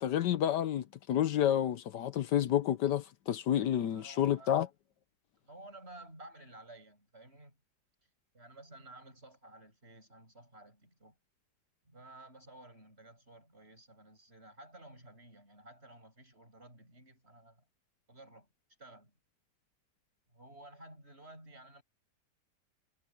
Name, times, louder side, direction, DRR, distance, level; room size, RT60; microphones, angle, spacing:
voice 1, 0.0-4.7, left 10 dB, 75° left, 1.4 m, -30 dB
voice 2, 3.9-4.7 5.4-7.6 8.0-8.1 8.3-11.2 11.8-17.6 18.1-18.5 18.8-19.1 20.3-21.8, right 2 dB, 35° right, 8.1 m, -54 dB
omnidirectional pair, 1.9 m